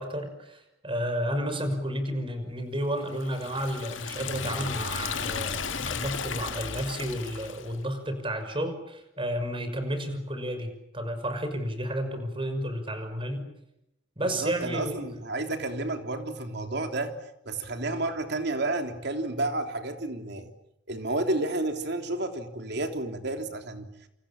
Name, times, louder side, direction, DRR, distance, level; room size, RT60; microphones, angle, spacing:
voice 1, 0.0-13.5 14.2-15.0, equal, 30° right, 8 dB, 5.9 m, -32 dB
Liquid, 3.1-7.8, left 6 dB, 85° left, 2.0 m, -34 dB
voice 2, 14.2-17.2 17.5-20.5 20.9-23.9, right 2 dB, 60° right, 6 dB, 3.5 m, -31 dB
29.0 x 28.5 x 7.2 m, 0.81 s
head